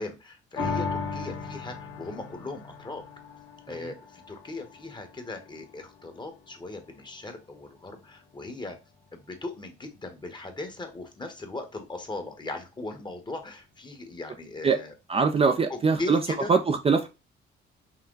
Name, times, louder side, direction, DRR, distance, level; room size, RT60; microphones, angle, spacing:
voice 1, 0.0-3.0 3.7-8.8 9.1-14.9 15.7-16.5, left 2 dB, 20° left, 1.2 m, -38 dB
sound 1, 0.6-7.2 7.7-7.8, left 4 dB, 70° left, 1.5 m, -37 dB
voice 2, 15.1-16.2 16.5-17.1, right 5 dB, 30° right, 0.5 m, -22 dB
5.8 x 2.2 x 3.8 m
cardioid pair, 90°, 20 cm